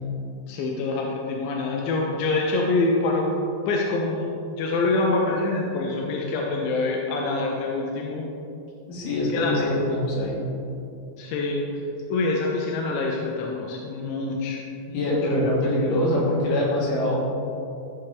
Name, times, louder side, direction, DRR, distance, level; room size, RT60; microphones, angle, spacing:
voice 1, 0.5-3.3 3.7-8.3 9.3-9.7 11.2-11.8 12.1-14.6 14.9-15.2, left 3 dB, 85° left, -1 dB, 2.5 m, -25 dB
voice 2, 8.9-10.4 14.9-17.2, left 1 dB, 65° left, -5 dB, 3.2 m, -23 dB
12.5 x 5.8 x 3.3 m, 2.6 s
omnidirectional pair, 4.2 m